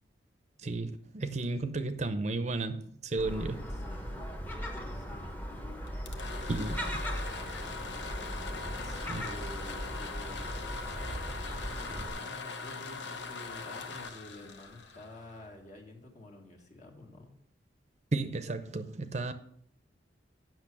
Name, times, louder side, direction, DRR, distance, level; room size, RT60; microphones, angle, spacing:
voice 1, 0.6-3.6 6.5-6.8 9.1-9.2 18.1-19.3, right 3 dB, 40° right, 10 dB, 0.6 m, -33 dB
Gull seagull, 3.2-12.1, equal, 10° left, 1.1 m, -38 dB
voice 2, 4.5-5.2 6.2-7.1 7.6-10.4 11.5-17.4, left 1 dB, 40° left, 0 dB, 1.8 m, -50 dB
sound 1, 5.9-15.7, left 4 dB, 75° left, 1.0 m, -41 dB
8.4 x 6.2 x 6.1 m, 0.67 s
head